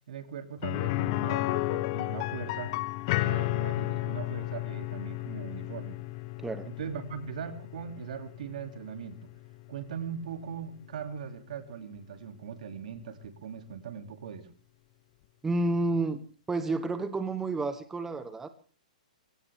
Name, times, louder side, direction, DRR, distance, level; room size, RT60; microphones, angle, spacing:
voice 1, 0.1-2.7 3.1-6.0 6.6-9.3 9.7-14.5, right 7 dB, 65° right, 8 dB, 2.8 m, -40 dB
sound 1, 0.6-10.4 10.7-10.8 13.2-13.3, left 19 dB, 40° left, 0.8 m, -33 dB
voice 2, 15.4-16.2 16.5-18.5, right 2 dB, 10° right, 11 dB, 1.0 m, -30 dB
23.5 x 17.5 x 3.6 m, 0.40 s
hypercardioid pair, 150°, 4 cm